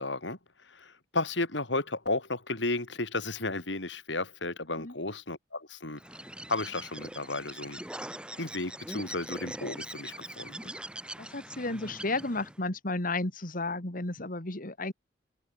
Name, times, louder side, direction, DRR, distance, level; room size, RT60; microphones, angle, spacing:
voice 1, 0.0-6.0 6.5-7.8 8.4-10.5, left 2 dB, 75° left, 4.9 m, -33 dB
Bird, 6.0-12.6, right 1 dB, 5° right, 4.2 m, -42 dB
voice 2, 11.2-14.9, left 2 dB, 50° left, 2.5 m, -33 dB
head